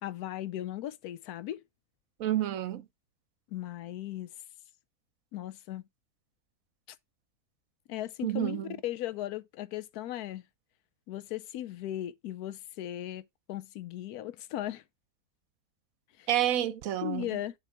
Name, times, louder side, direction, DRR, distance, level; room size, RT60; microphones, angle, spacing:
voice 1, 0.0-1.6 3.5-4.3 5.3-5.8 7.9-10.4 11.1-13.2 13.5-14.8 16.2-16.3 17.0-17.5, left 13 dB, 80° left, 1.1 m, -37 dB
voice 2, 2.2-2.8 8.2-8.7 16.3-17.3, right 12 dB, 70° right, 1.0 m, -29 dB
7.1 x 3.5 x 4.5 m
omnidirectional pair, 1.6 m